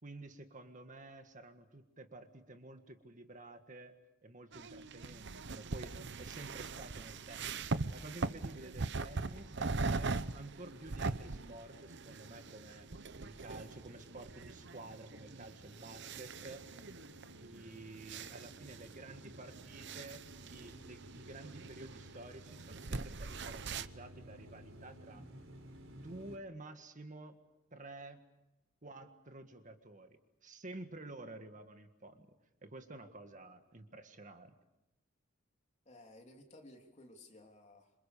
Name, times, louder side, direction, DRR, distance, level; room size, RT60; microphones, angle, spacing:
voice 1, 0.0-3.9 4.2-7.6 7.9-10.1 10.3-12.9 13.2-16.6 17.4-25.2 25.9-27.4 27.7-28.2 28.8-32.3 32.6-34.5, right 2 dB, 40° right, 7 dB, 1.8 m, -51 dB
sound 1, 4.5-23.9, right 3 dB, 60° right, 0.9 m, -42 dB
sound 2, 9.3-26.4, right 1 dB, 90° right, 4.1 m, -56 dB
voice 2, 35.8-37.9, left 1 dB, 35° left, 2 dB, 3.4 m, -57 dB
27.5 x 26.0 x 6.9 m, 0.94 s
head